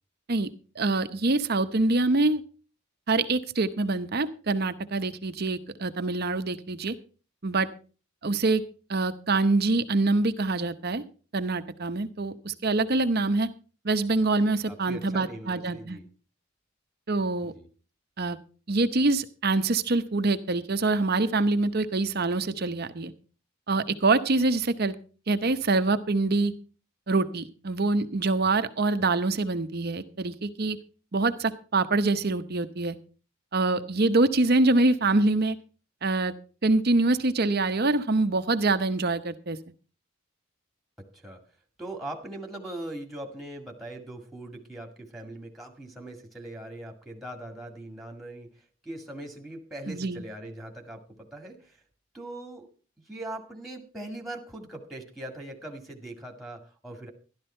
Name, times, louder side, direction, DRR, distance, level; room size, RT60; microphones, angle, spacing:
voice 1, 0.7-2.4 3.1-7.0 7.4-7.7 8.2-8.6 8.9-11.0 11.3-13.5 13.8-16.0 17.1-17.5 18.2-18.4 18.7-23.1 23.7-24.9 25.3-26.5 27.1-30.8 31.1-33.0 33.5-35.6 36.0-36.3 36.6-39.6 49.9-50.2, right 3 dB, 50° right, 10 dB, 0.8 m, -25 dB
voice 2, 14.7-16.0 17.4-17.7 28.4-28.5 29.0-29.1 41.0-41.4 41.8-48.5 48.8-51.8 52.1-52.7 53.1-57.1, right 1 dB, ahead, 2 dB, 1.9 m, -41 dB
12.0 x 12.0 x 4.4 m, 0.37 s
head